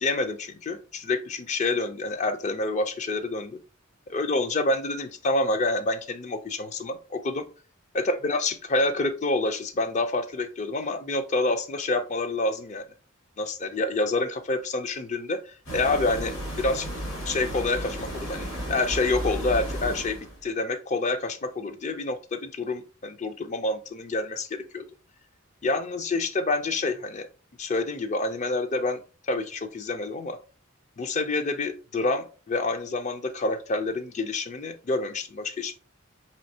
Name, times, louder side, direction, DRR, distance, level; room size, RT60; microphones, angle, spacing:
voice 1, 0.0-3.6 4.1-7.4 7.9-12.9 13.4-16.9 17.2-24.9 25.6-27.3 27.6-29.0 29.3-30.4 31.0-35.8, left 2 dB, 35° left, 9 dB, 0.4 m, -28 dB
sound 1, 15.7-20.4, right 1 dB, 75° left, 1.7 m, -33 dB
4.3 x 3.2 x 2.7 m, 0.35 s
head